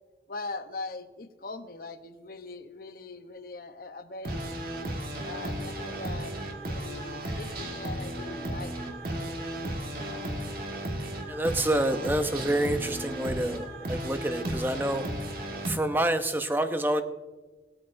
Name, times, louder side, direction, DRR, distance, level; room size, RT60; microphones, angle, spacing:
voice 1, 0.3-4.4 4.9-6.4 6.7-8.7, left 3 dB, 50° left, 8 dB, 0.8 m, -41 dB
sound 1, 4.2-15.7, right 1 dB, 50° right, 1.6 m, -34 dB
voice 2, 11.3-15.0 15.7-17.0, right 1 dB, 10° right, 8 dB, 0.6 m, -27 dB
19.5 x 8.8 x 2.6 m, 1.3 s
head